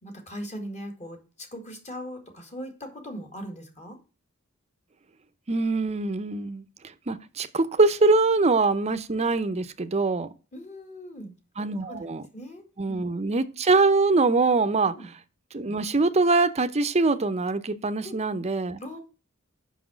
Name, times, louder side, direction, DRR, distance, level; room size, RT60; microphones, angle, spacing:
voice 1, 0.0-4.0 10.5-11.3 11.9-13.0 14.9-15.1 18.0-18.1 18.8-19.0, equal, 35° left, 2.1 m, -40 dB
voice 2, 5.5-6.6 7.1-10.3 11.6-12.2 12.8-14.9 15.5-18.8, right 3 dB, 30° right, 0.6 m, -23 dB
6.0 x 5.7 x 6.2 m
head